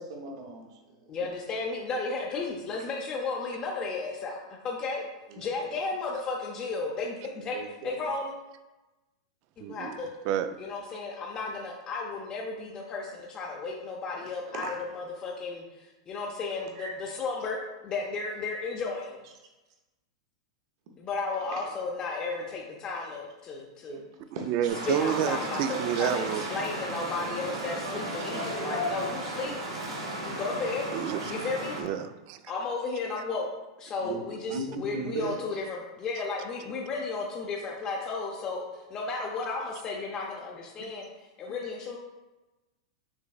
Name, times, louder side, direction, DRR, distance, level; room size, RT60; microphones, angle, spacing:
voice 1, 0.0-1.2 5.3-5.8 7.4-8.0 14.2-14.8 16.8-17.0 21.5-21.7 23.9-24.0 24.3-24.5 34.0-34.2 34.5-35.4, right 3 dB, 60° right, 1 dB, 0.8 m, -38 dB
voice 2, 1.1-5.0 5.4-8.3 9.6-10.1 10.6-19.2 21.0-24.0 24.9-29.8 30.2-30.9 31.3-31.8 32.5-33.5 33.8-41.1 41.4-42.0, left 4 dB, 30° left, -2 dB, 0.6 m, -34 dB
voice 3, 9.6-10.0 10.3-10.6 24.4-26.5 30.9-31.3 31.8-32.4, right 10 dB, 45° right, 11 dB, 0.3 m, -29 dB
sound 1, 24.7-31.8, right 1 dB, 85° right, 1.2 m, -35 dB
6.1 x 3.3 x 2.3 m, 1.1 s
hypercardioid pair, 130°, 3 cm